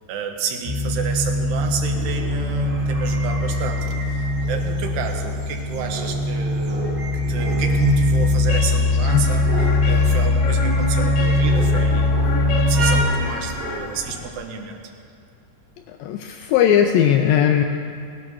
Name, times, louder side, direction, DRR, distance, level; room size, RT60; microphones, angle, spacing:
voice 1, 0.1-14.8, right 5 dB, 85° right, 4 dB, 3.3 m, -30 dB
sound 1, 0.6-13.0, left 2 dB, 55° right, 1.6 m, -21 dB
sound 2, 1.9-14.3, right 1 dB, 40° right, 1.8 m, -33 dB
sound 3, 8.5-14.4, left 4 dB, 50° left, 1.8 m, -32 dB
voice 2, 16.0-17.6, left 9 dB, 80° left, 5 dB, 2.0 m, -18 dB
17.5 x 10.5 x 6.3 m, 2.4 s
omnidirectional pair, 4.6 m